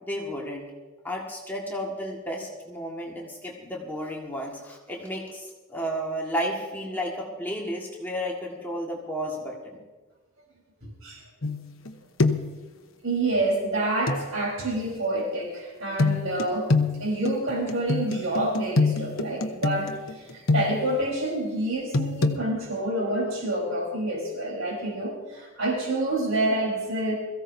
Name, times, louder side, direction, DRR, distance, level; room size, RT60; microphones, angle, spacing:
voice 1, 0.0-0.7 1.0-9.8, equal, 10° left, -3 dB, 1.7 m, -32 dB
voice 2, 10.8-11.2 13.0-16.7 17.0-27.1, right 1 dB, 80° right, -1 dB, 4.2 m, -28 dB
sound 1, 11.4-11.9 12.2-12.6 14.1-14.2 16.0-21.0 21.9-22.4, left 3 dB, 75° left, 0.9 m, -25 dB
22.0 x 15.0 x 2.7 m, 1.3 s
head